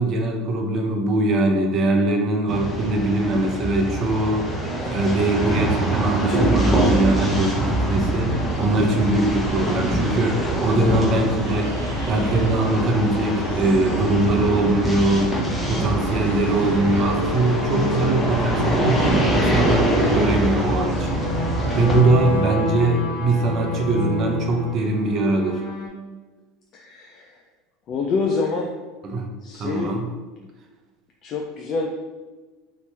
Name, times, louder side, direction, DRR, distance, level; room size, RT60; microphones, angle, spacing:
voice 1, 0.0-4.5 4.9-11.7 12.1-15.4 15.7-21.2 21.8-25.6 29.0-29.3 29.6-30.1, right 2 dB, 45° right, 3 dB, 0.6 m, -22 dB
sound 1, 2.5-22.0, right 1 dB, 10° left, 0.9 m, -24 dB
sound 2, 7.7-22.4, equal, 85° right, 0.4 m, -35 dB
sound 3, 14.5-25.9, left 1 dB, 70° left, 0.8 m, -31 dB
voice 2, 21.6-22.3 26.7-27.4 27.9-28.8 29.4-30.0 31.2-31.9, left 4 dB, 45° left, 1 dB, 0.4 m, -27 dB
2.9 x 2.8 x 3.3 m, 1.3 s
hypercardioid pair, 80°, 0 cm